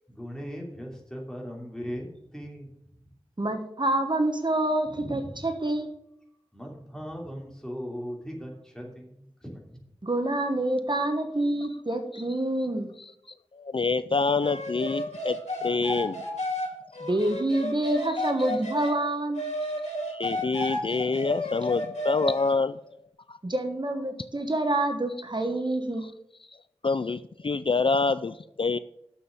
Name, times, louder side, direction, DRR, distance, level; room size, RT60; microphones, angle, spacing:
voice 1, 0.1-2.8 4.9-5.4 6.5-9.8, equal, 5° left, -1 dB, 2.9 m, -39 dB
voice 2, 3.4-5.9 10.0-12.9 17.0-19.4 23.4-26.0, right 1 dB, 40° right, 6 dB, 1.1 m, -27 dB
voice 3, 13.6-15.4 15.6-16.2 20.1-22.8 26.8-28.8, left 4 dB, 50° left, 14 dB, 0.3 m, -26 dB
sound 1, 14.4-18.9 19.3-22.5, left 1 dB, 90° left, 2.8 m, -32 dB
7.0 x 7.0 x 7.6 m, 0.79 s
wide cardioid pair, 55°, 11 cm